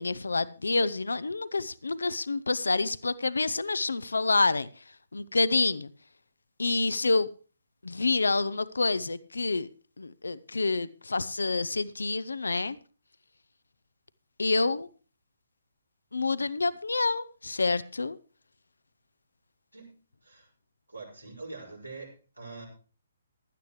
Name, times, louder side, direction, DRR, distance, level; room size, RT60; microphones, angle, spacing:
voice 1, 0.0-4.7 5.1-5.9 6.6-7.3 7.8-9.7 10.0-12.8 14.4-14.9 16.1-18.2, left 3 dB, 75° left, 17 dB, 0.6 m, -28 dB
voice 2, 20.9-22.7, right 3 dB, 90° right, -2 dB, 5.7 m, -44 dB
16.0 x 11.5 x 3.2 m, 0.36 s
figure-of-eight pair, 135°, 0 cm